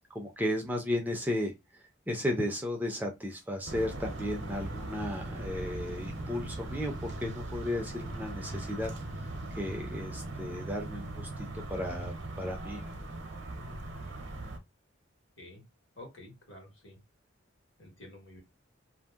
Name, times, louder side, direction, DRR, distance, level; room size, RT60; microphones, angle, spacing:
voice 1, 0.1-1.5 2.1-8.9 9.5-12.8, left 1 dB, 10° right, 0.4 m, -34 dB
sound 1, 3.7-14.6, right 2 dB, 55° right, 0.7 m, -39 dB
voice 2, 16.0-17.0 17.8-18.4, left 1 dB, 70° left, 1.3 m, -50 dB
2.7 x 2.0 x 3.4 m
head